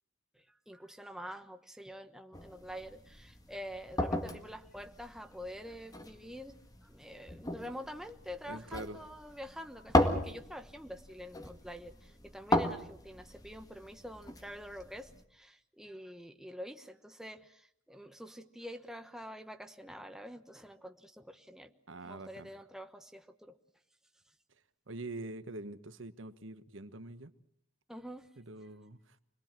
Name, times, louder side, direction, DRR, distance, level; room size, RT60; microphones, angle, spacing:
voice 1, 0.3-21.7 22.0-23.6 27.9-28.3, equal, 5° right, 6 dB, 1.1 m, -47 dB
sound 1, 2.3-15.2, left 1 dB, 20° left, 1.9 m, -36 dB
voice 2, 8.5-9.0 21.9-22.5 24.9-27.3 28.4-29.2, right 2 dB, 85° right, 11 dB, 1.4 m, -44 dB
26.0 x 21.0 x 7.6 m, 0.71 s
head